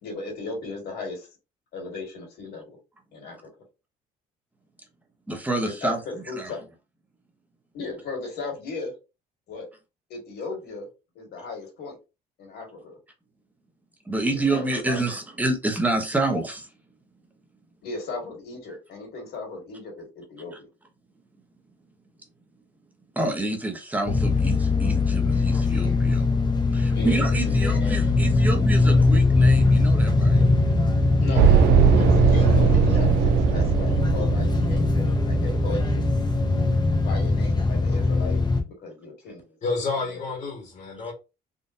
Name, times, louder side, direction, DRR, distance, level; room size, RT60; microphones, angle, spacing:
voice 1, 0.0-1.3 1.7-2.8 3.1-3.4 5.6-6.6 7.7-8.9 9.5-9.7 10.1-10.9 11.2-12.0 12.4-13.0 14.3-15.1 17.8-20.7 26.9-28.0 31.2-34.9 35.2-36.1 37.0-38.4 38.7-39.6 39.8-40.2, left 3 dB, 75° left, 2.0 m, -36 dB
voice 2, 5.3-6.0 6.3-6.5 14.1-16.7 23.2-26.3 26.7-30.4, right 2 dB, 10° right, 0.9 m, -28 dB
sound 1, 24.1-38.6, left 2 dB, 25° left, 0.8 m, -21 dB
sound 2, 31.4-35.6, right 8 dB, 85° right, 0.5 m, -20 dB
voice 3, 39.6-41.1, left 3 dB, 45° left, 1.4 m, -29 dB
3.7 x 2.5 x 2.6 m
cardioid pair, 110°, 17 cm